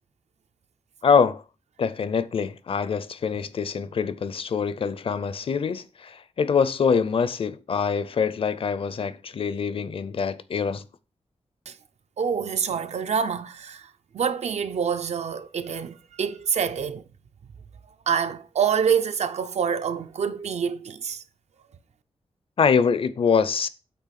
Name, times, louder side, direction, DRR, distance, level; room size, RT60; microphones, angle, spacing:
voice 1, 1.0-1.4 1.8-10.8 22.6-23.7, left 6 dB, 55° left, 0.5 m, -24 dB
voice 2, 12.2-17.0 18.1-21.2, right 7 dB, 75° right, 0.6 m, -26 dB
8.4 x 3.2 x 5.8 m
wide cardioid pair, 165°, 11 cm